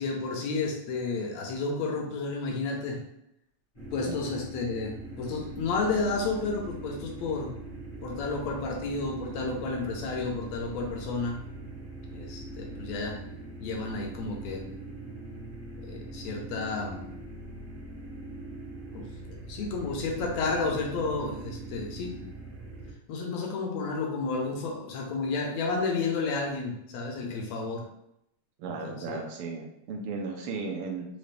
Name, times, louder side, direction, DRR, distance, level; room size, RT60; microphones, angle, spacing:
voice 1, 0.0-3.0 3.9-7.6 8.0-11.4 12.1-13.2 13.6-14.7 15.8-17.0 18.9-22.2 23.1-27.9 28.7-29.2, left 3 dB, 75° left, 1 dB, 1.8 m, -31 dB
sound 1, 3.7-22.9, right 2 dB, 25° left, 0.6 m, -42 dB
voice 2, 28.6-31.1, right 4 dB, 75° right, 1 dB, 1.3 m, -35 dB
5.0 x 2.5 x 3.3 m, 0.78 s
omnidirectional pair, 3.3 m